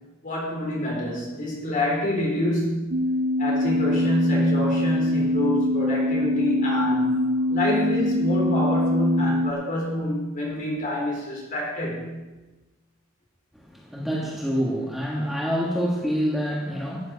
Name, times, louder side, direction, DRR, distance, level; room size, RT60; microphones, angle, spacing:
voice 1, 0.2-2.9 3.4-7.2 7.5-12.1, left 1 dB, 40° left, -2 dB, 4.0 m, -26 dB
sound 1, 2.9-9.5, left 1 dB, 50° right, 0.6 m, -24 dB
voice 2, 13.5-17.1, equal, ahead, -4 dB, 1.5 m, -27 dB
13.0 x 8.3 x 5.3 m, 1.1 s
head